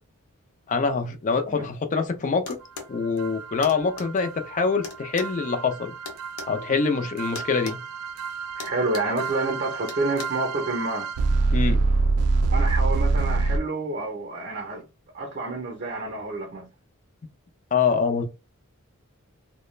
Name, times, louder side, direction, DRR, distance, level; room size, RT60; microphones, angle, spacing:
voice 1, 0.7-2.6 2.9-5.9 6.5-7.8 11.5-11.8 17.7-18.2, left 5 dB, 35° left, 0.4 m, -25 dB
sound 1, 2.5-2.9 3.6-4.1 4.8-6.5 7.4-7.8 8.1-8.3 8.6-9.2 9.9-10.3, left 4 dB, 90° left, 0.7 m, -38 dB
sound 2, 3.2-13.6, right 3 dB, 85° right, 0.3 m, -26 dB
voice 2, 8.6-11.1 12.5-14.9 15.1-16.7, right 2 dB, 45° right, 0.6 m, -29 dB
2.2 x 2.1 x 3.1 m
head